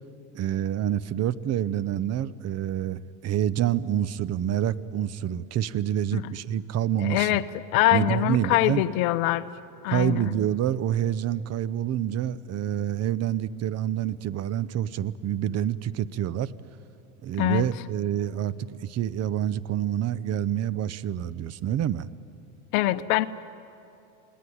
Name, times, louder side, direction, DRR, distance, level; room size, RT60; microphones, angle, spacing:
voice 1, 0.3-7.4 7.9-8.8 9.9-16.5 17.2-22.1, right 11 dB, 35° right, 17 dB, 0.8 m, -27 dB
voice 2, 7.0-7.4 7.7-9.4 9.8-10.2 17.4-17.7 22.7-23.3, left 16 dB, 70° left, 12 dB, 0.9 m, -23 dB
29.0 x 19.5 x 9.6 m, 2.7 s
supercardioid pair, 110°, 44 cm